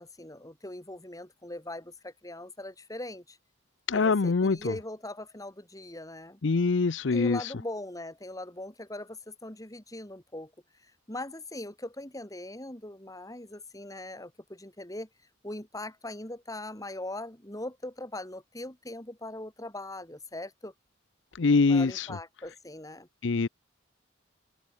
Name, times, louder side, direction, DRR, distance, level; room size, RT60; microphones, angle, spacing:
voice 1, 0.0-3.4 3.9-6.4 7.1-10.5 11.1-15.1 15.4-20.7 21.7-23.1, left 1 dB, 20° left, 4.4 m, -40 dB
voice 2, 3.9-4.7 6.4-7.5 21.4-22.1 23.2-23.5, left 4 dB, 70° left, 0.6 m, -24 dB
open air
head